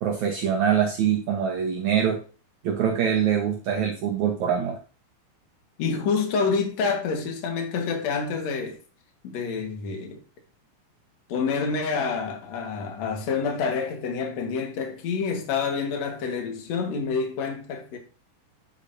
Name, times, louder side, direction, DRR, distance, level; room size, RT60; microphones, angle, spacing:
voice 1, 0.0-2.2 2.6-4.8, right 8 dB, 85° right, 1.6 m, -24 dB
voice 2, 5.8-8.8 9.2-10.2 11.3-18.0, left 5 dB, 55° left, 2.0 m, -27 dB
9.2 x 8.6 x 2.7 m
omnidirectional pair, 5.4 m